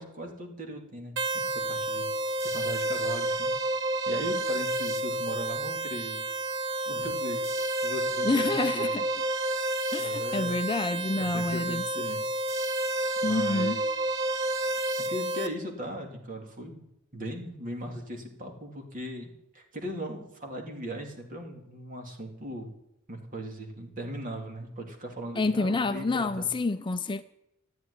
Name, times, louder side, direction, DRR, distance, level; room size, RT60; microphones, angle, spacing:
voice 1, 0.0-2.1 2.4-3.5 4.1-6.2 6.8-7.4 7.8-8.9 10.0-10.6 11.0-12.3 13.2-14.0 15.1-16.8 17.1-22.7 23.1-26.5, equal, 40° right, 2.6 m, -38 dB
sound 1, 1.2-15.5, right 1 dB, 60° right, 1.2 m, -30 dB
voice 2, 8.2-9.0 9.9-11.8 13.2-13.8 25.4-27.2, left 3 dB, 20° left, 0.5 m, -28 dB
14.0 x 9.3 x 9.8 m
head